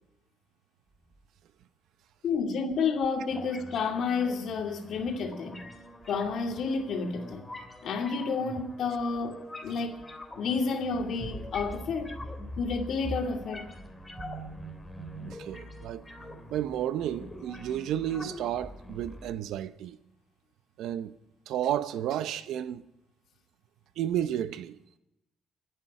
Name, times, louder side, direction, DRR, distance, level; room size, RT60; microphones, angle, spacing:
sound 1, 1.0-1.2 5.6-7.9 9.0-9.2 9.6-10.5 10.8-17.9 18.2-19.4, right 3 dB, 30° right, 4.2 m, -48 dB
voice 1, 2.2-5.6 6.1-7.5 7.8-10.0 10.4-12.1 12.6-13.7, left 5 dB, 70° left, 2.6 m, -30 dB
sound 2, 3.3-19.3, left 1 dB, 15° left, 3.0 m, -44 dB
voice 2, 15.2-16.0 16.5-20.0 20.8-21.2 21.5-22.8 24.0-24.8, right 11 dB, 85° right, 0.8 m, -32 dB
24.5 x 9.6 x 4.9 m
cardioid pair, 90°, 0 cm